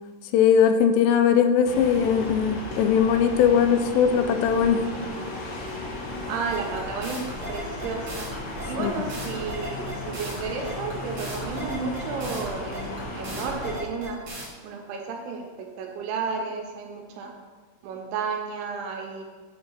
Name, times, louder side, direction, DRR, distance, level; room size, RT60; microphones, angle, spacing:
voice 1, 0.3-4.9 8.8-8.9, left 7 dB, 90° left, 7 dB, 3.1 m, -20 dB
sound 1, 1.6-13.8, left 2 dB, 75° left, 1.6 m, -35 dB
voice 2, 6.3-7.2 7.5-8.3 8.7-14.3 14.6-17.3 17.8-19.2, right 5 dB, 80° right, 2 dB, 3.2 m, -32 dB
sound 2, 6.5-14.5, right 1 dB, 60° right, 1.8 m, -38 dB
8.8 x 3.4 x 5.6 m, 1.4 s
omnidirectional pair, 5.5 m